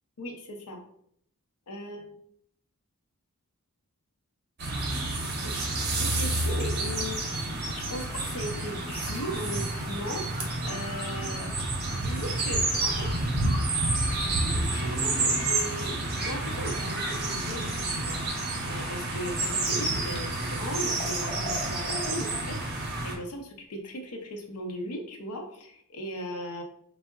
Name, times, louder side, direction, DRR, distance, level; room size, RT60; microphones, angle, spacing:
voice 1, 0.2-0.8 1.7-2.1 5.4-5.6 5.9-11.5 11.9-13.3 14.2-18.2 18.7-22.6 23.0-26.6, equal, 90° left, 3 dB, 0.6 m, -38 dB
sound 1, 4.6-23.2, right 2 dB, 45° right, 0.6 m, -29 dB
Liquid, 18.9-19.0 19.2-22.4 22.8-22.9, left 2 dB, 20° left, 0.5 m, -41 dB
3.5 x 2.0 x 2.4 m, 0.69 s
head